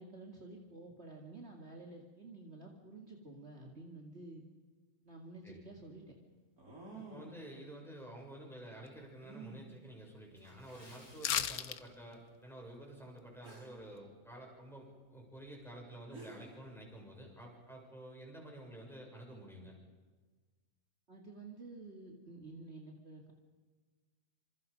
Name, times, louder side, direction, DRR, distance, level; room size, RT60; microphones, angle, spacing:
voice 1, 0.0-4.4 5.0-6.1 21.1-23.3, right 2 dB, 45° right, 0 dB, 2.6 m, -51 dB
sound 1, 5.1-5.2 6.6-7.5 9.2-9.6 10.6-10.7 11.3-11.4 13.4-13.8 15.8-15.9 16.1-16.6, right 3 dB, 85° right, 5.2 m, -51 dB
voice 2, 7.1-19.8, right 1 dB, ahead, -2 dB, 7.0 m, -50 dB
Water / Splash splatter, 10.3-12.2 12.5-12.8 13.3-13.5 14.0-14.1, left 1 dB, 40° left, 4.6 m, -61 dB
sound 2, 11.2-11.8 12.1-12.2, left 9 dB, 90° left, 1.4 m, -34 dB
27.0 x 26.5 x 5.3 m, 1.4 s
omnidirectional pair, 1.5 m